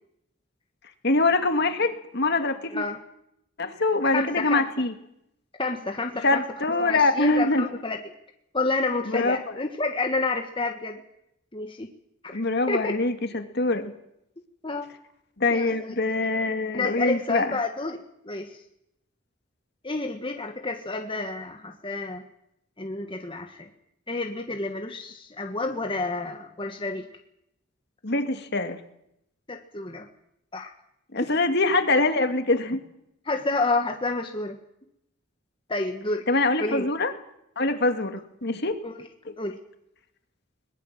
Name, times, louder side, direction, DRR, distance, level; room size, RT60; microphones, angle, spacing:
voice 1, 1.0-2.8 3.6-4.9 6.2-7.7 9.1-9.4 12.3-13.9 15.4-17.5 28.0-28.8 31.1-32.8 36.3-37.1 37.6-38.8 39.3-39.4, left 2 dB, 55° left, 7 dB, 2.3 m, -24 dB
voice 2, 4.1-4.6 5.6-6.4 6.8-8.0 8.5-11.0 11.5-11.9 12.3-12.9 14.6-14.9 15.5-15.9 16.7-18.6 19.8-22.2 22.8-23.7 24.1-27.1 29.5-30.1 30.5-30.7 31.2-31.3 33.2-34.6 35.7-36.3 36.6-36.9 38.8-39.1 39.4-39.6, left 3 dB, 25° left, 4 dB, 1.5 m, -29 dB
21.5 x 20.5 x 7.5 m, 0.78 s
head